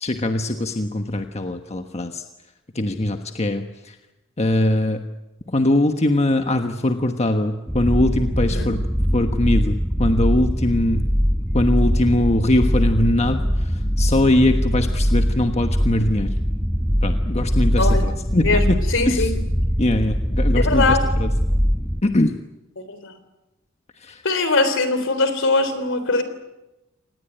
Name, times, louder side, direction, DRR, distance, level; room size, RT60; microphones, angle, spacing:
voice 1, 0.0-2.2 2.7-3.9 4.4-5.0 5.5-8.8 9.1-11.1 11.5-16.3 17.0-18.8 19.1-19.3 19.8-21.3 22.0-22.3 24.0-24.2, left 1 dB, 35° left, 6 dB, 1.3 m, -21 dB
sound 1, 7.7-22.0, equal, ahead, 1.2 m, -21 dB
voice 2, 17.8-18.1 18.4-19.4 20.6-21.1 22.8-23.1 24.2-26.2, left 3 dB, 65° left, 11 dB, 3.5 m, -21 dB
26.5 x 19.0 x 9.1 m, 0.98 s
head